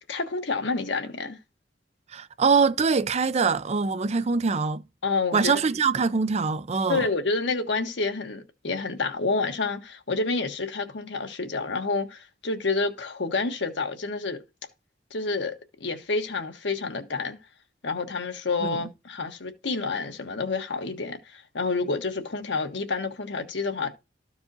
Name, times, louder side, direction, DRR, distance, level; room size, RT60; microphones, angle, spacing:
voice 1, 0.1-1.4 5.0-5.6 6.9-14.4 15.1-15.5 15.8-17.4 17.8-23.9, left 3 dB, 85° left, 1.2 m, -29 dB
voice 2, 2.1-4.8 5.3-7.1 18.6-18.8, right 5 dB, 40° right, 0.5 m, -23 dB
13.5 x 4.6 x 2.7 m
head